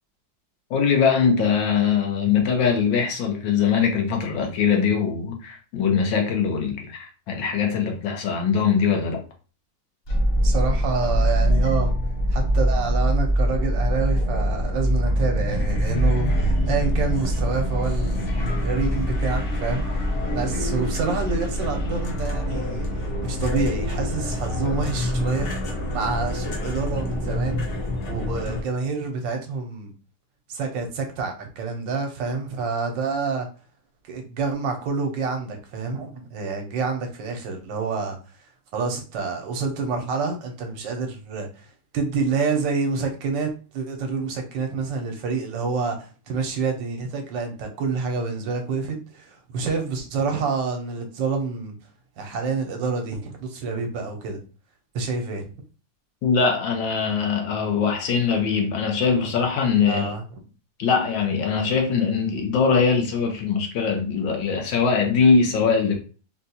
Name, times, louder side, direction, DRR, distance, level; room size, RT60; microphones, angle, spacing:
voice 1, 0.7-9.2 56.2-60.1 60.8-65.9, left 6 dB, 90° left, 1.6 m, -22 dB
sound 1, 10.1-28.6, equal, 70° left, 0.5 m, -24 dB
voice 2, 10.3-11.9 12.3-19.8 20.3-25.5 25.9-27.7 28.1-29.9 30.5-33.5 34.1-38.2 38.7-41.7 41.9-51.7 52.2-54.4 54.9-55.5 59.9-60.2, right 4 dB, 80° right, 1.4 m, -28 dB
4.0 x 2.3 x 2.7 m
omnidirectional pair, 2.0 m